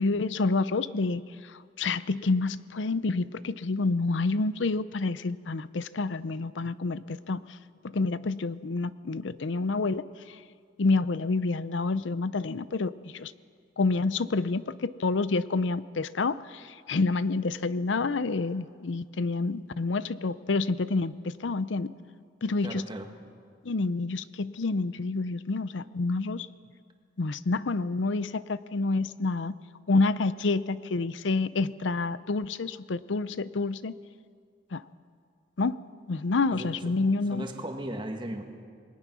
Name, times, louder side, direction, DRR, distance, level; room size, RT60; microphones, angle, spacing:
voice 1, 0.0-7.6 7.8-10.4 10.8-13.3 13.8-21.9 22.4-22.9 23.6-26.5 27.2-29.5 29.9-33.9 34.7-34.8 35.6-35.8 36.1-37.5, left 3 dB, 80° left, 16 dB, 0.6 m, -28 dB
voice 2, 22.6-23.1 36.5-36.7 37.3-38.4, right 1 dB, 25° right, 4 dB, 1.8 m, -36 dB
28.0 x 21.0 x 6.2 m, 2.1 s
head